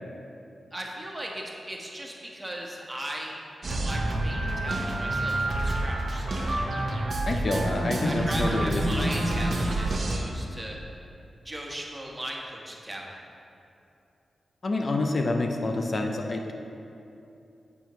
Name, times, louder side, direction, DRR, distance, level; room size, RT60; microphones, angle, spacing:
voice 1, 0.7-6.5 8.0-10.8 11.4-13.2, right 1 dB, 15° right, -2 dB, 1.2 m, -38 dB
sound 1, 3.6-10.2, right 1 dB, 60° right, 0.9 m, -28 dB
voice 2, 7.3-9.1 14.6-16.5, left 2 dB, 55° left, 3 dB, 0.5 m, -28 dB
7.2 x 5.6 x 3.1 m, 2.7 s
cardioid pair, 45°, 0 cm